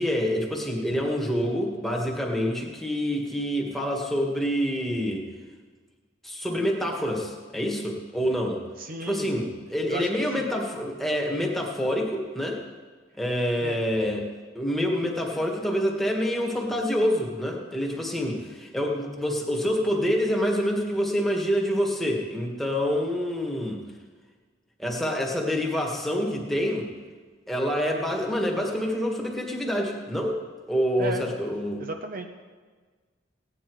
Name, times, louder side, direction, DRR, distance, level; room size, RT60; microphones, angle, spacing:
voice 1, 0.0-5.3 6.2-8.6 9.1-12.6 13.2-14.3 14.6-23.8 24.8-26.9 27.5-30.4 30.7-31.9, equal, ahead, -1 dB, 1.7 m, -27 dB
voice 2, 8.8-9.3 9.9-10.1 10.4-10.5 13.6-13.8 31.0-31.2 31.8-32.3, right 3 dB, 50° right, 5 dB, 0.8 m, -34 dB
17.0 x 9.9 x 4.7 m, 1.4 s
head